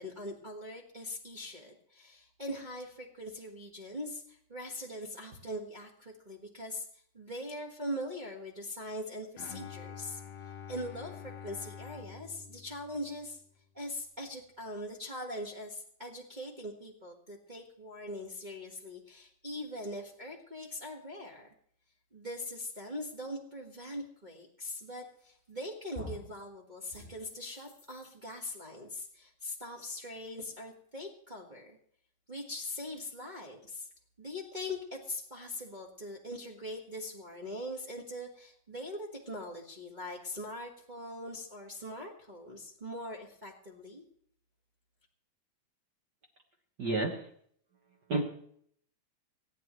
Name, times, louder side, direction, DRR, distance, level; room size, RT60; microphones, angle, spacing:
voice 1, 0.0-6.9 7.1-10.2 10.7-13.4 13.7-21.5 22.1-31.8 32.3-33.9 34.2-44.0, left 1 dB, 35° right, -1 dB, 0.7 m, -42 dB
Bowed string instrument, 9.4-13.5, left 8 dB, 65° left, 1.8 m, -47 dB
sound 1, 25.2-25.6 25.9-26.3 26.9-28.3, equal, 25° left, 6.7 m, -47 dB
voice 2, 46.8-47.3 48.1-48.2, right 2 dB, 55° right, 1 dB, 1.2 m, -30 dB
27.0 x 9.2 x 3.2 m, 0.64 s
omnidirectional pair, 3.7 m